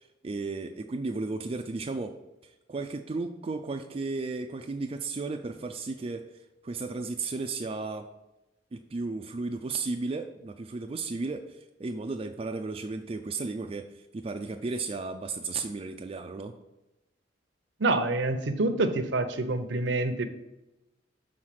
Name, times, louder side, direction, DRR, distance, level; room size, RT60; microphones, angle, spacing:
voice 1, 0.0-2.1 2.4-6.2 6.6-8.1 8.7-16.5, right 3 dB, 30° right, 5 dB, 0.4 m, -34 dB
voice 2, 17.8-20.3, right 2 dB, 70° right, 7 dB, 0.7 m, -27 dB
6.3 x 3.9 x 5.8 m, 0.96 s
head